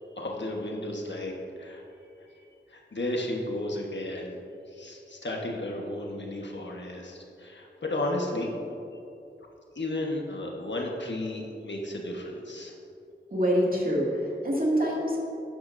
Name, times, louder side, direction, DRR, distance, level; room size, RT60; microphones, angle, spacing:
voice 1, 0.2-1.8 2.2-2.4 2.7-4.4 4.7-8.5 9.7-12.7, left 1 dB, 70° left, 0 dB, 1.3 m, -33 dB
voice 2, 13.3-15.2, equal, 50° right, -4 dB, 2.3 m, -25 dB
12.5 x 9.5 x 2.7 m, 2.7 s
wide cardioid pair, 50°, 20 cm